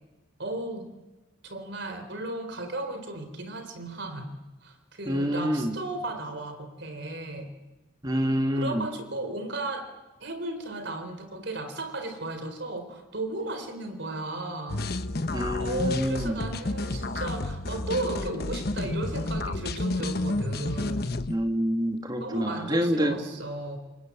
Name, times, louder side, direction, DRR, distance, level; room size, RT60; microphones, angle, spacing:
voice 1, 0.4-0.9 1.4-4.3 4.6-7.5 8.1-8.2 8.5-9.9 10.2-14.8 15.6-21.1 22.2-23.8, right 2 dB, 55° right, 7 dB, 4.2 m, -35 dB
voice 2, 5.1-5.8 8.0-8.9 15.3-16.4 21.3-23.2, equal, 20° right, 5 dB, 2.4 m, -27 dB
sound 1, 14.7-21.4, left 2 dB, 50° left, 1.2 m, -30 dB
29.0 x 23.0 x 8.7 m, 1.1 s
head